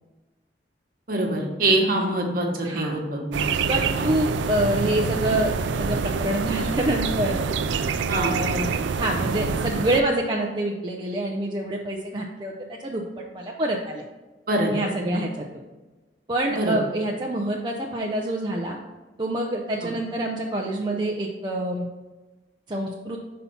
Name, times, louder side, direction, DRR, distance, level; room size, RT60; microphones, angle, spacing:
voice 1, 1.1-3.6 3.9-4.1 8.1-8.3 14.5-14.7 16.6-16.7, right 1 dB, 50° right, 1 dB, 1.2 m, -24 dB
voice 2, 2.6-3.0 3.7-5.5 5.8-7.4 8.1-8.7 9.0-13.0 13.3-14.1 14.7-15.5 16.3-18.8 19.2-21.9 22.7-23.2, right 1 dB, 25° right, -1 dB, 0.5 m, -26 dB
sound 1, 3.3-10.0, right 5 dB, 80° right, 0.4 m, -26 dB
5.6 x 4.2 x 5.5 m, 1.2 s
head